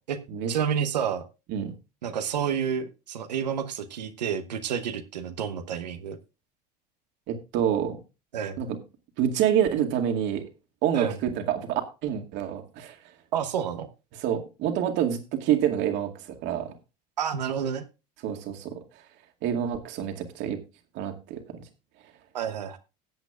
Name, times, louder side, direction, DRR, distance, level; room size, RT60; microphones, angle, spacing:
voice 1, 0.5-1.2 2.0-6.2 8.3-8.6 10.9-11.2 13.3-13.9 17.2-17.8 22.3-22.8, right 8 dB, 90° right, 8 dB, 1.1 m, -29 dB
voice 2, 7.3-8.0 8.6-8.8 9.2-10.5 10.8-13.0 14.2-16.1 16.4-16.7 18.2-18.7 19.4-20.6 20.9-21.4, right 9 dB, 60° right, 5 dB, 2.2 m, -27 dB
18.5 x 8.1 x 2.4 m, 0.28 s
hypercardioid pair, 80°, 21 cm